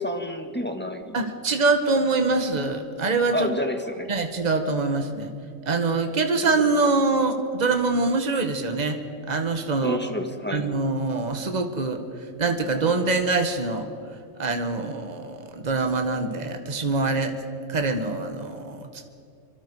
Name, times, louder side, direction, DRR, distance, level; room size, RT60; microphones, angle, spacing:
voice 1, 0.0-1.2 3.3-4.1 9.8-10.6, left 1 dB, 10° left, 5 dB, 1.5 m, -29 dB
voice 2, 1.1-3.5 4.1-5.3 5.6-9.0 9.3-10.0 10.5-12.0 12.4-13.9 14.4-17.4 17.7-18.9, right 3 dB, 35° right, 6 dB, 1.6 m, -24 dB
25.5 x 24.0 x 4.9 m, 2.5 s
omnidirectional pair, 1.3 m